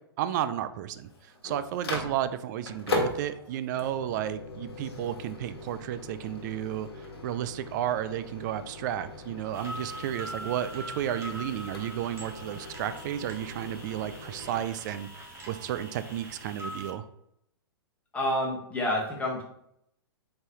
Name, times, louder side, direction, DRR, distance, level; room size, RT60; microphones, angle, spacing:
voice 1, 0.2-6.9 7.2-17.0, right 11 dB, 45° right, 12 dB, 0.4 m, -32 dB
Microwave oven, 1.0-14.6, left 2 dB, 80° left, 1.1 m, -39 dB
sound 1, 9.5-16.9, equal, 20° right, 1.0 m, -43 dB
voice 2, 18.1-19.4, left 1 dB, 10° left, -3 dB, 1.2 m, -28 dB
3.9 x 3.8 x 3.0 m, 0.76 s
hypercardioid pair, 120°, 13 cm